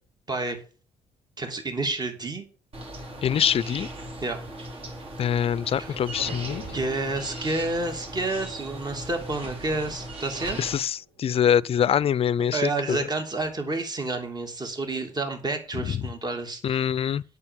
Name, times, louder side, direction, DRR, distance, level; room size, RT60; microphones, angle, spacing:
voice 1, 0.3-0.6 1.4-2.4 4.2-4.4 5.7-6.0 6.7-10.6 12.5-16.9, right 2 dB, 30° right, 2.8 m, -29 dB
sound 1, 2.7-10.8, right 1 dB, 45° right, 4.0 m, -38 dB
voice 2, 3.2-3.9 5.2-6.6 10.6-13.0 15.7-16.0 16.6-17.2, left 9 dB, 45° left, 0.5 m, -24 dB
sound 2, 6.1-10.1 10.5-11.3 13.1-13.6, right 2 dB, 80° right, 6.3 m, -46 dB
8.7 x 7.1 x 8.7 m
hypercardioid pair, 55°, 13 cm